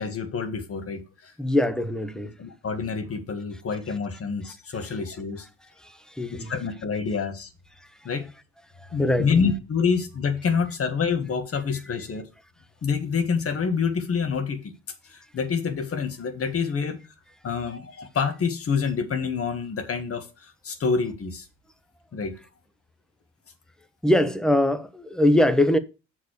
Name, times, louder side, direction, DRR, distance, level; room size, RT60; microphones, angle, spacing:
voice 1, 0.0-1.3 2.4-5.5 6.3-7.5 8.0-8.3 8.9-12.3 12.8-14.7 15.0-17.0 17.4-21.5 22.1-22.3, left 5 dB, 50° left, 1.6 m, -27 dB
voice 2, 1.4-2.3 3.9-4.0 4.7-5.0 6.2-6.5 9.0-9.4 11.7-11.8 24.0-25.8, left 1 dB, ahead, 0.9 m, -22 dB
6.7 x 4.6 x 6.4 m
cardioid pair, 90°, 30 cm